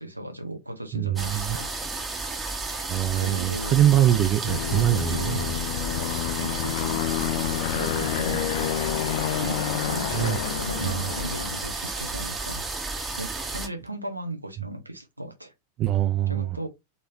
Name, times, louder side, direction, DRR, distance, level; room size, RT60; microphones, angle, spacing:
voice 1, 0.0-1.7 2.0-2.1 3.2-4.3 5.1-5.5 6.4-7.0 7.7-8.8 9.4-12.6 13.1-15.5 16.3-16.7, right 1 dB, 85° right, 1.1 m, -36 dB
voice 2, 0.9-1.6 2.9-5.5 10.1-10.4 10.8-11.1 15.8-16.6, right 12 dB, 35° right, 0.4 m, -23 dB
sound 1, 1.2-13.7, right 3 dB, 15° right, 1.2 m, -32 dB
Aircraft, 4.5-11.8, left 13 dB, 55° left, 0.4 m, -29 dB
4.2 x 3.3 x 2.9 m
figure-of-eight pair, 90°, 0 cm